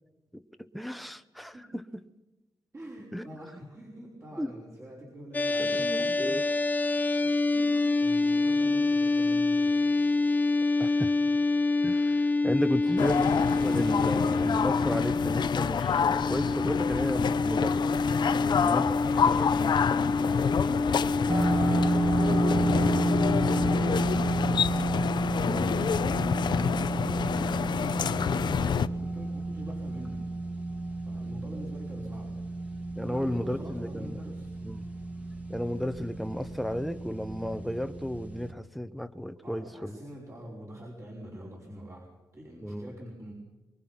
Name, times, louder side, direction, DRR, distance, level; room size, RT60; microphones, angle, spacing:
voice 1, 0.3-2.0 3.1-3.3 4.4-4.5 5.6-6.4 10.8-11.1 11.8-18.0 18.6-18.9 19.2-19.5 25.4-25.9 32.9-34.2 34.6-34.9 35.5-40.0 42.6-43.0, equal, ahead, 10 dB, 1.0 m, -34 dB
voice 2, 2.7-6.3 7.5-9.8 12.8-13.1 18.3-24.7 25.2-30.3 31.0-32.4 33.0-34.5 39.4-43.3, equal, 35° right, -4 dB, 5.5 m, -45 dB
sound 1, 5.3-23.8, left 3 dB, 20° left, 0.7 m, -27 dB
sound 2, 13.0-28.9, left 7 dB, 65° left, 0.7 m, -28 dB
sound 3, 21.3-38.5, right 2 dB, 15° right, 2.3 m, -31 dB
24.5 x 22.5 x 6.0 m, 1.1 s
cardioid pair, 105°, 8 cm